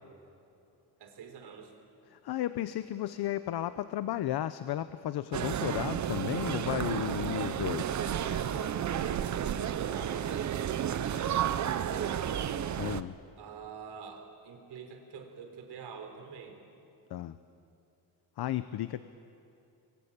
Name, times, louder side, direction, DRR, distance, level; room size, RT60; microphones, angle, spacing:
voice 1, 1.0-1.7 7.5-7.7 8.2-12.6 13.3-16.6, right 6 dB, 75° right, 5 dB, 4.0 m, -45 dB
voice 2, 2.1-8.0 12.8-13.2 17.1-17.4 18.4-19.0, left 12 dB, 70° left, 13 dB, 0.8 m, -33 dB
sound 1, 5.3-13.0, right 9 dB, 45° right, 0.8 m, -32 dB
28.5 x 22.5 x 8.8 m, 2.7 s
wide cardioid pair, 175°, 40 cm